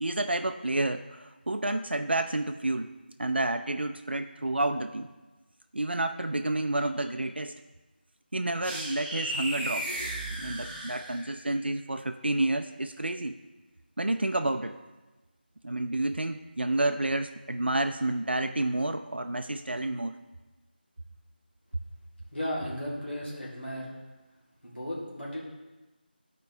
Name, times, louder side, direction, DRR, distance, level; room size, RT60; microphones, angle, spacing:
voice 1, 0.0-5.1 5.7-7.6 8.3-9.9 10.4-13.4 14.0-14.8 15.6-20.2, right 2 dB, 80° right, 8 dB, 0.4 m, -30 dB
sound 1, 8.6-11.5, right 1 dB, 10° right, 0.5 m, -35 dB
voice 2, 22.3-23.9 24.6-25.4, equal, 90° left, -6 dB, 1.9 m, -35 dB
11.5 x 4.5 x 2.7 m, 1.2 s
figure-of-eight pair, 165°, 6 cm